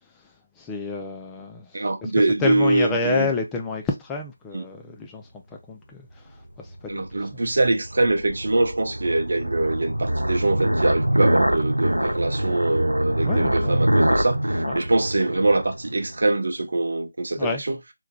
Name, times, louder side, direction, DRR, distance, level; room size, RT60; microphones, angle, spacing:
voice 1, 0.1-2.1 2.4-7.0 7.3-7.4 13.2-13.8 14.6-14.8 17.4-17.6, left 4 dB, 10° left, 0.3 m, -30 dB
voice 2, 1.7-3.3 4.5-4.6 6.9-17.7, right 2 dB, 55° right, 0.8 m, -23 dB
sound 1, 6.7-16.2, right 1 dB, 90° right, 0.4 m, -25 dB
3.1 x 2.2 x 3.5 m
figure-of-eight pair, 160°, 0 cm